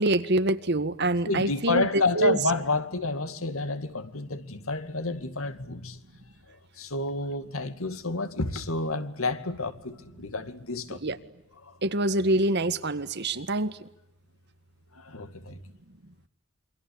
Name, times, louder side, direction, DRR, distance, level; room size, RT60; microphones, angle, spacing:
voice 1, 0.0-2.4 10.9-11.2 11.8-13.9, right 2 dB, 55° right, 1.7 m, -25 dB
voice 2, 1.2-11.0 11.6-11.8 14.9-15.6, left 3 dB, 85° left, 2.3 m, -30 dB
28.0 x 24.5 x 8.6 m
head